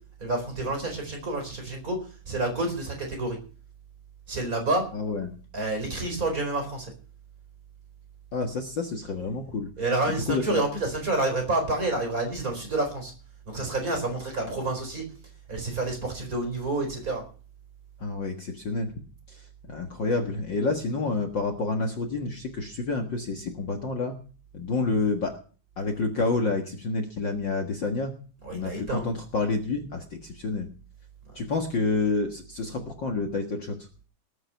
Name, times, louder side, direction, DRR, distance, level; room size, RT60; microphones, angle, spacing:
voice 1, 0.2-2.0 2.3-3.4 4.3-4.8 5.5-6.9 9.8-13.1 13.5-15.0 15.5-17.2 28.4-29.1, right 2 dB, 20° right, 4 dB, 4.5 m, -28 dB
voice 2, 4.9-5.3 8.3-9.7 10.1-10.6 18.0-18.9 19.3-24.1 24.5-25.3 25.8-28.1 28.5-30.7 31.3-33.7, left 3 dB, 80° left, 4 dB, 1.0 m, -29 dB
20.0 x 7.9 x 5.7 m, 0.39 s
omnidirectional pair, 4.8 m